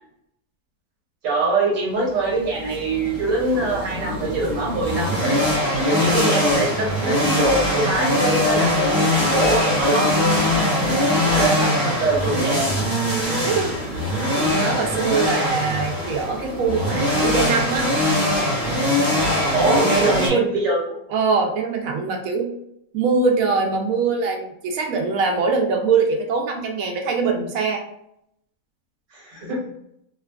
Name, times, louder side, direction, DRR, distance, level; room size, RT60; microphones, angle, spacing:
voice 1, 1.2-5.4 5.9-10.4 11.3-12.8 19.5-21.0 29.1-29.6, right 2 dB, 55° right, -4 dB, 1.3 m, -23 dB
sound 1, 2.0-20.3, left 1 dB, 35° right, 1.0 m, -22 dB
voice 2, 10.9-11.5 13.4-13.9 14.3-17.9 19.8-20.5 21.1-22.5 22.9-27.8, right 4 dB, 70° right, 2 dB, 0.8 m, -23 dB
2.9 x 2.2 x 2.2 m, 0.77 s
omnidirectional pair, 1.9 m